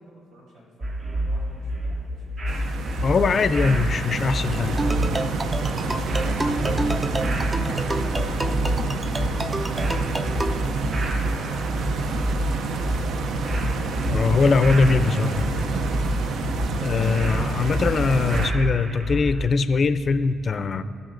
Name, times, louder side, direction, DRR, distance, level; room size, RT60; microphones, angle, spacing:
voice 1, 0.0-2.6 5.5-8.7 9.0-10.8 11.3-13.3, right 1 dB, 90° right, -5 dB, 2.1 m, -46 dB
sound 1, 0.8-19.5, equal, 40° right, 0.8 m, -28 dB
Stream, 2.5-18.5, right 5 dB, 70° right, 0.5 m, -29 dB
voice 2, 3.0-4.8 14.1-15.6 16.8-20.8, left 4 dB, 45° left, 11 dB, 0.4 m, -21 dB
sound 2, 4.8-10.7, right 1 dB, 20° right, 0.4 m, -29 dB
16.5 x 6.6 x 2.6 m, 2.5 s
cardioid pair, 90°, 0 cm